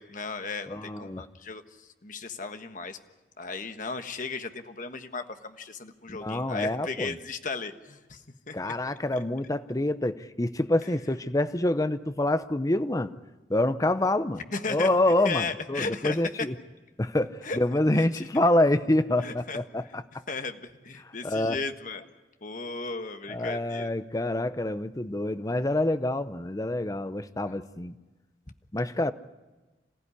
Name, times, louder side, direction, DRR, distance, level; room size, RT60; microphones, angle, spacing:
voice 1, 0.0-3.0 3.4-8.7 14.5-14.9 15.2-16.2 17.4-18.3 19.2-19.6 19.8-19.9 20.3-22.1 22.4-23.9 27.5-27.6, left 4 dB, 45° left, 7 dB, 1.4 m, -36 dB
voice 2, 0.7-1.3 6.1-7.1 8.5-13.1 13.5-14.4 14.7-16.5 17.0-20.0 21.2-21.6 23.3-28.0 28.7-29.1, left 1 dB, 20° left, 12 dB, 0.7 m, -26 dB
27.0 x 15.5 x 9.9 m, 1.2 s
head